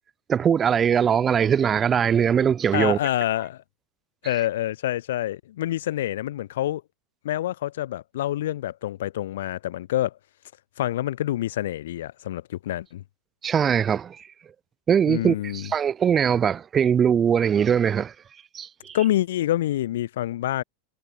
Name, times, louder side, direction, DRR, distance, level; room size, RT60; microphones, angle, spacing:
voice 1, 0.3-3.0 13.4-14.2 14.9-18.1 18.5-19.0, right 8 dB, 25° right, 0.8 m, -21 dB
voice 2, 2.7-3.6 4.2-6.8 7.2-10.1 10.8-13.0 15.1-15.7 18.9-20.6, left 13 dB, 75° left, 1.1 m, -27 dB
hypercardioid pair, 115°, 0 cm